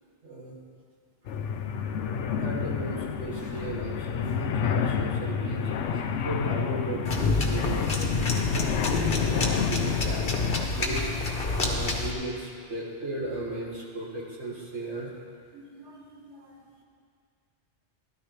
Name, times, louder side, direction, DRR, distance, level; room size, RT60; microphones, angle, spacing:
voice 1, 0.2-0.5 2.4-10.2 10.7-11.1 11.5-15.1 15.5-16.5, right 2 dB, 85° right, -3 dB, 2.1 m, -37 dB
sound 1, 1.3-10.7, left 6 dB, 90° left, 0.9 m, -29 dB
sound 2, 7.0-12.1, left 3 dB, 55° left, 1.3 m, -28 dB
13.0 x 12.0 x 3.3 m, 2.1 s
omnidirectional pair, 1.2 m